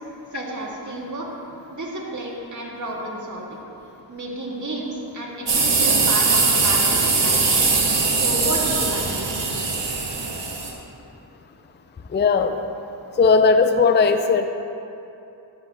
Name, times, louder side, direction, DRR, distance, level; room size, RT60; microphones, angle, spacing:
voice 1, 0.3-1.3 1.7-3.6 4.1-9.3, right 1 dB, 40° right, -3 dB, 2.0 m, -31 dB
sound 1, 5.5-10.7, right 4 dB, 65° right, 1.5 m, -21 dB
voice 2, 12.1-12.6 13.2-14.5, left 4 dB, 25° left, 8 dB, 0.4 m, -17 dB
11.5 x 9.9 x 2.9 m, 2.8 s
cardioid pair, 70°, 46 cm